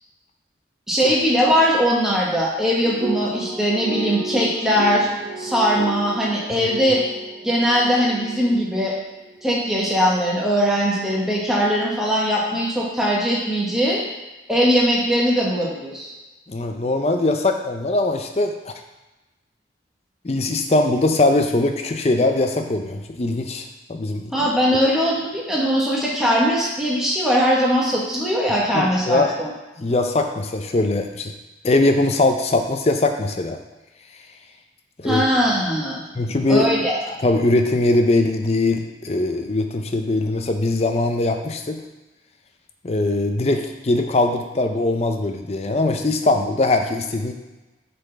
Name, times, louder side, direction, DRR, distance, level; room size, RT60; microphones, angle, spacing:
voice 1, 0.9-5.1 5.4-7.0 7.4-8.9 9.4-14.0 14.5-16.1 24.3-29.5 35.0-36.0 36.5-37.0, equal, ahead, -5 dB, 1.2 m, -20 dB
sound 1, 2.8-9.0, right 2 dB, 70° right, 0.7 m, -32 dB
voice 2, 16.5-18.7 20.2-24.3 28.7-29.3 29.8-31.3 31.6-33.6 35.0-35.2 36.1-36.7 37.1-41.8 42.8-47.3, left 2 dB, 35° left, 5 dB, 0.5 m, -21 dB
8.1 x 4.2 x 3.3 m, 1.1 s
head